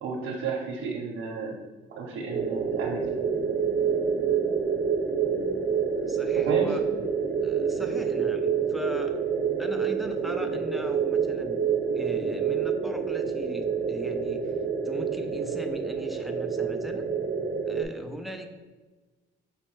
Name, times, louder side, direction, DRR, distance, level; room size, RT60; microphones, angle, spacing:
voice 1, 0.0-1.6 1.9-3.1 6.3-6.7, right 5 dB, 90° right, -2 dB, 0.7 m, -32 dB
sound 1, 2.3-17.8, right 6 dB, 50° right, 0.7 m, -27 dB
voice 2, 6.0-6.8 7.4-9.2 9.6-11.6 11.9-14.5 14.8-17.1 17.7-18.5, right 1 dB, ahead, 5 dB, 0.5 m, -39 dB
5.2 x 3.2 x 3.1 m, 1.3 s
cardioid pair, 90°, 20 cm